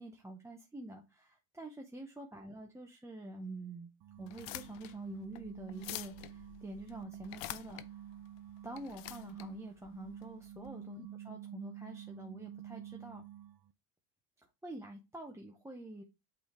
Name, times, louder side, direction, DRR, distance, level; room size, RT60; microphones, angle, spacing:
voice 1, 0.0-3.9 4.2-7.8 8.6-13.2 14.6-16.0, right 1 dB, 5° right, 0.8 m, -47 dB
sound 1, 4.0-13.7, right 11 dB, 50° right, 0.6 m, -49 dB
sound 2, 4.2-10.7, left 15 dB, 65° left, 0.7 m, -48 dB
8.5 x 3.5 x 4.4 m
cardioid pair, 140°, 48 cm